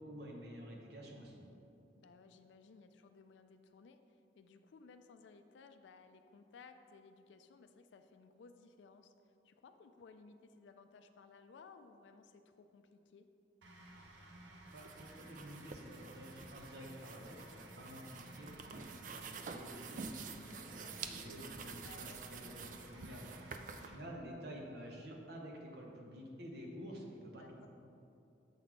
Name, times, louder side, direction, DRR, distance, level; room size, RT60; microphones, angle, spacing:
voice 1, 0.0-1.4 14.7-27.7, equal, 65° right, -1 dB, 1.0 m, -50 dB
voice 2, 1.9-9.1 9.4-13.3 18.1-18.6 21.8-22.2 23.8-24.0 27.3-27.7, left 4 dB, 85° left, 8 dB, 0.4 m, -59 dB
sound 1, 13.6-23.9, right 1 dB, 90° right, 0.8 m, -56 dB
sound 2, 14.7-23.9, right 5 dB, 45° right, 0.3 m, -49 dB
7.2 x 4.1 x 4.5 m, 2.7 s
head